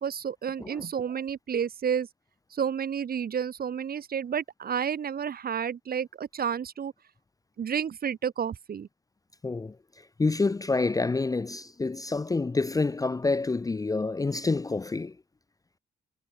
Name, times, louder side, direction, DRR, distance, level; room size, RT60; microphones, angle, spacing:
voice 1, 0.0-2.1 2.5-6.9 7.6-8.9, right 8 dB, 50° right, 2.0 m, -30 dB
voice 2, 9.4-9.8 10.2-15.2, left 3 dB, 15° left, 0.6 m, -27 dB
cardioid pair, 90°, 20 cm